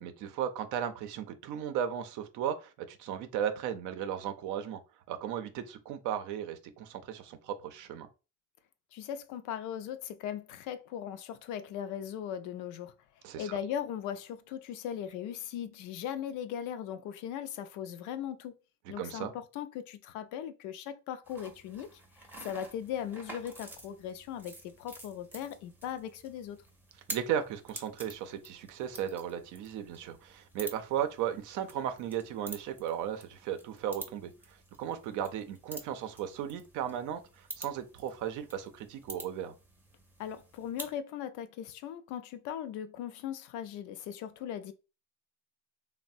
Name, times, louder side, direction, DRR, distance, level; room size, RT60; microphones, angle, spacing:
voice 1, 0.0-4.8 5.1-8.1 13.2-13.6 18.8-19.3 27.1-34.3 34.8-39.5, right 9 dB, 75° right, 0.5 m, -36 dB
voice 2, 8.9-12.9 13.4-18.5 18.9-22.0 22.4-26.6 40.2-44.7, left 9 dB, 80° left, 0.5 m, -39 dB
sound 1, 21.2-41.0, right 1 dB, 5° right, 0.5 m, -49 dB
3.2 x 2.1 x 2.6 m
cardioid pair, 115°, 30 cm